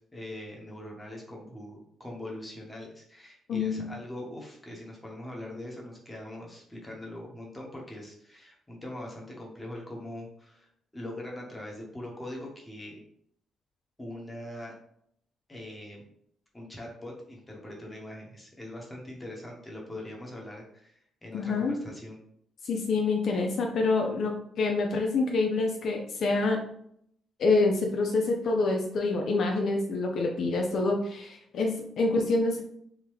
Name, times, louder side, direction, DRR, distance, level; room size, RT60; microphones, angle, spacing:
voice 1, 0.0-13.0 14.0-14.8 15.5-16.0 16.5-22.2, left 1 dB, 15° left, -1 dB, 1.0 m, -42 dB
voice 2, 3.5-3.9 21.3-21.8 22.6-26.6 27.4-32.6, left 3 dB, 60° left, 1 dB, 0.4 m, -27 dB
3.4 x 2.2 x 3.1 m, 0.68 s
cardioid pair, 90°, 0 cm